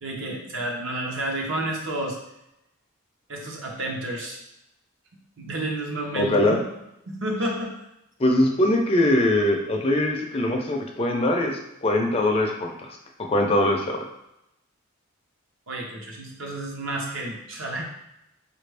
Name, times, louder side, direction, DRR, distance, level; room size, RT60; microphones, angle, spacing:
voice 1, 0.0-2.2 3.3-4.4 5.4-6.6 7.1-7.7 15.7-17.8, right 1 dB, 65° right, -1 dB, 0.9 m, -30 dB
voice 2, 6.1-6.6 8.2-13.0 13.3-14.0, left 1 dB, 25° left, 2 dB, 0.4 m, -22 dB
4.6 x 2.5 x 3.3 m, 0.86 s
head